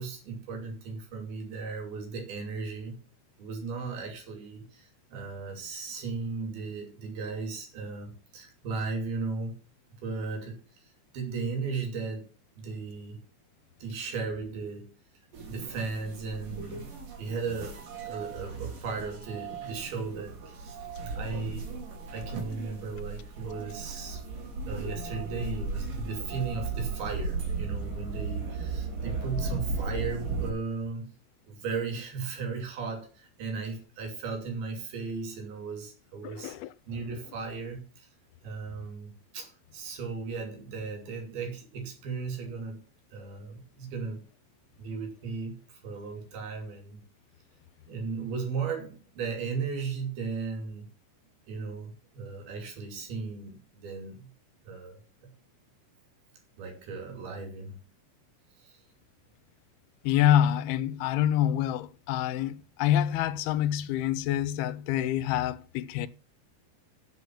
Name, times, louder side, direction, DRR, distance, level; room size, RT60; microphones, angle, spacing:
voice 1, 0.0-3.0 3.4-9.6 10.0-12.3 12.6-13.2 13.8-14.9 15.5-16.9 17.2-20.8 21.1-21.7 22.1-24.2 24.7-31.1 31.4-36.6 36.9-38.1 38.4-42.8 43.1-44.2 44.8-47.0 47.9-50.9 51.5-54.3 54.6-55.0 56.6-57.8 58.6-58.8, right 4 dB, 80° right, 4.6 m, -36 dB
sound 1, 15.3-30.5, right 4 dB, 60° right, 4.2 m, -36 dB
voice 2, 36.2-36.7 60.0-66.1, left 11 dB, 90° left, 2.6 m, -26 dB
7.9 x 7.7 x 7.4 m
omnidirectional pair, 4.4 m